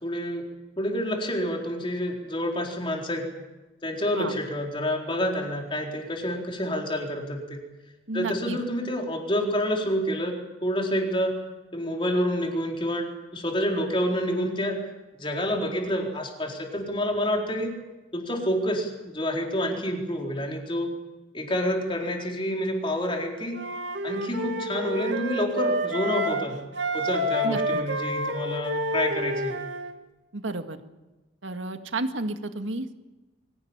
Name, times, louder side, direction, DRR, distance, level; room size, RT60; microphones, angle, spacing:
voice 1, 0.0-0.5 0.8-3.3 3.8-7.6 8.1-11.4 11.7-14.8 15.2-17.8 18.1-20.9 21.3-23.6 24.0-26.6 26.9-29.6, equal, 25° left, 1 dB, 4.2 m, -28 dB
voice 2, 8.1-8.6 27.4-27.8 30.3-30.8 31.4-32.9, right 2 dB, 85° right, 7 dB, 2.0 m, -31 dB
Wind instrument woodwind instrument, 23.5-26.5 26.7-29.9, equal, 65° right, 2.3 m, -29 dB
24.0 x 17.0 x 8.9 m, 1.1 s
head